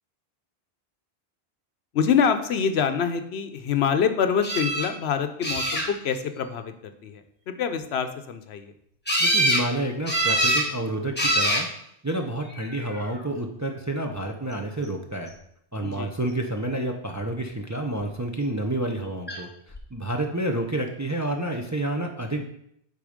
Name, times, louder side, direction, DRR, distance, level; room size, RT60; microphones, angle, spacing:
voice 1, 1.9-8.7 15.8-16.1, left 7 dB, 70° left, 9 dB, 0.9 m, -26 dB
sound 1, 4.4-4.9 5.4-6.2 9.1-9.7 10.1-10.7 11.2-11.7 12.6-13.1 19.3-19.4 19.7-19.8, right 1 dB, 10° left, 1.2 m, -24 dB
voice 2, 9.2-11.7 12.0-15.3 15.7-19.5 19.9-22.4, right 1 dB, 20° right, 3 dB, 0.5 m, -29 dB
8.4 x 4.0 x 5.0 m, 0.72 s
omnidirectional pair, 1.2 m